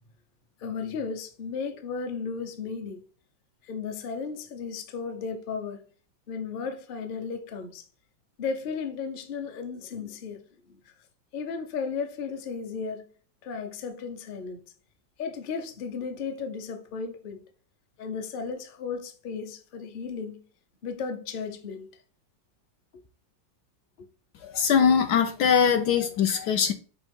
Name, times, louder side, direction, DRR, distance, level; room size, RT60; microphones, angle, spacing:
voice 1, 0.6-3.0 3.6-5.8 6.3-7.8 8.4-10.4 10.7-10.9 11.3-13.0 13.4-14.6 15.2-17.4 18.0-20.4 20.8-21.9 24.0-24.1 25.9-26.0, left 5 dB, 40° left, 0.7 m, -35 dB
voice 2, 24.4-26.7, left 7 dB, 70° left, 1.1 m, -22 dB
6.9 x 3.1 x 5.3 m
omnidirectional pair, 2.1 m